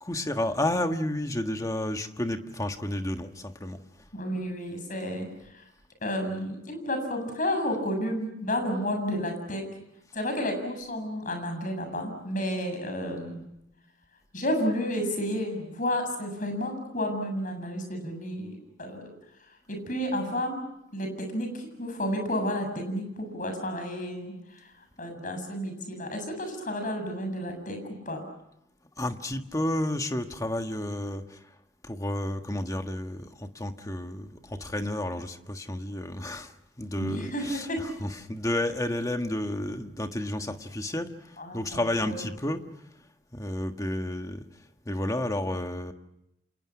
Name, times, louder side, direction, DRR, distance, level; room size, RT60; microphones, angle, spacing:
voice 1, 0.0-3.8 29.0-31.5 31.8-42.6 43.3-44.5 44.8-45.9, left 1 dB, 20° left, 6 dB, 1.6 m, -31 dB
voice 2, 4.1-5.6 6.0-9.6 10.1-13.4 14.3-19.1 19.7-20.6 20.9-24.7 25.0-27.8 28.1-28.2 37.0-37.8 41.4-42.2, equal, 50° left, 5 dB, 7.5 m, -31 dB
29.5 x 27.5 x 6.1 m, 0.83 s
head